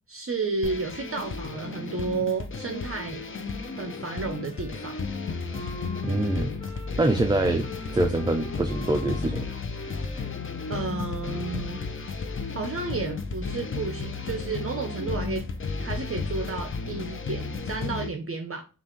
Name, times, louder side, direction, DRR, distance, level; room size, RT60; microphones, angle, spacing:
voice 1, 0.1-3.2 3.7-5.0 10.7-11.8 12.5-15.4 15.8-18.6, right 4 dB, 40° right, 0.7 m, -32 dB
sound 1, 0.6-18.1, left 4 dB, 35° left, 0.6 m, -33 dB
Wind instrument woodwind instrument, 3.4-11.9, left 1 dB, 15° left, 1.1 m, -45 dB
voice 2, 6.0-6.6 7.0-9.5, right 2 dB, 15° right, 0.4 m, -25 dB
5.3 x 2.5 x 3.0 m
wide cardioid pair, 95°, 34 cm